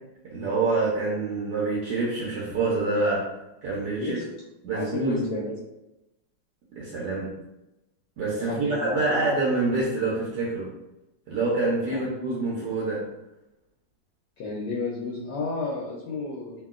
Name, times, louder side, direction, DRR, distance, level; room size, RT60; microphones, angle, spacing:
voice 1, 0.2-3.3 3.6-4.2 4.6-5.3 6.7-7.3 8.2-10.7 11.3-13.0, right 3 dB, 75° right, -5 dB, 1.2 m, -26 dB
voice 2, 3.9-4.2 4.7-5.5 8.4-9.1 11.9-12.0 14.4-16.6, left 3 dB, 75° left, -4 dB, 1.1 m, -32 dB
2.9 x 2.6 x 2.4 m, 0.95 s
omnidirectional pair, 1.9 m